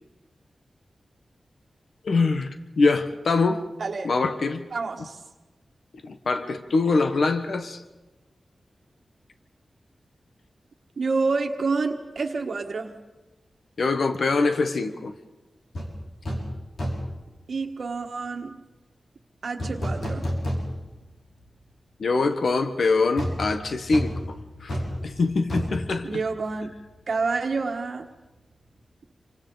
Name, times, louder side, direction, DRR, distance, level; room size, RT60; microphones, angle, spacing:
voice 1, 2.0-3.7 4.0-4.6 6.0-7.8 13.8-15.1 22.0-24.1 24.6-24.8 25.0-26.2, left 3 dB, 65° left, 8 dB, 1.1 m, -23 dB
voice 2, 3.8-4.2 4.7-5.2 11.0-13.0 17.5-18.6 19.4-20.3 26.0-26.7 27.1-28.1, right 4 dB, 60° right, 4 dB, 1.4 m, -28 dB
sound 1, 15.7-15.9 16.2-16.5 16.8-17.2 19.6-21.0 21.4-21.5 23.2-26.8 27.1-27.2, equal, 80° left, 5.3 m, -31 dB
27.5 x 25.5 x 3.9 m, 1.1 s
wide cardioid pair, 120°, 0 cm